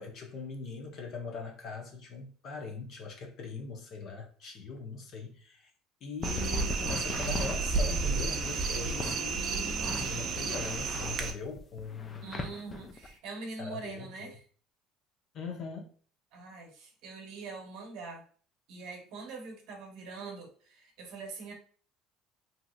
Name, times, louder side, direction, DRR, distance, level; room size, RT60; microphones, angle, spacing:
voice 1, 0.0-5.7 6.0-12.5 13.6-14.3 15.3-15.9, left 4 dB, 55° left, 3 dB, 0.7 m, -41 dB
sound 1, 6.2-9.2 9.8-13.1, left 3 dB, 30° left, 0.4 m, -40 dB
sound 2, 6.2-11.3, right 4 dB, 50° right, 0.4 m, -32 dB
voice 2, 9.4-10.6 12.2-14.4 16.3-18.2 18.7-21.5, right 4 dB, 70° right, 2 dB, 0.9 m, -44 dB
2.8 x 2.6 x 2.3 m, 0.43 s
supercardioid pair, 95°, 0 cm